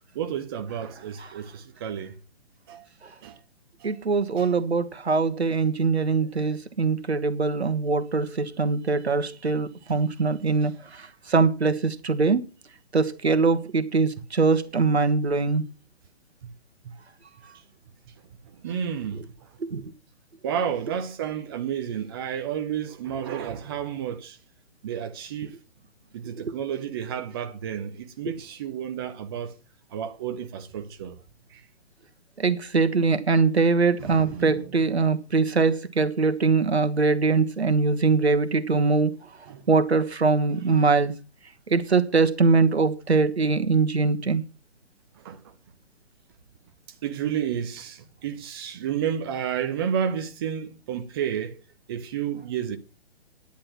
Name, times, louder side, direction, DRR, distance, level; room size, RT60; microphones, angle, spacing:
voice 1, 0.1-2.1 2.7-2.9 3.2-3.4 3.8-4.0 4.4-4.5 9.9-10.0 10.6-10.7 16.4-16.5 16.8-16.9 17.5-17.6 18.6-19.5 20.4-24.4 24.8-25.6 26.1-29.5 29.9-31.2 31.5-31.6 34.0-34.6 39.5-39.7 45.2-45.4 47.0-51.6 51.9-52.8, right 8 dB, 20° right, 0.7 m, -31 dB
voice 2, 3.8-10.7 11.3-12.4 12.9-15.6 19.6-19.8 32.4-39.1 39.7-41.1 41.7-44.4, right 4 dB, 70° right, 1.4 m, -22 dB
10.0 x 9.8 x 5.8 m
figure-of-eight pair, 135°, 33 cm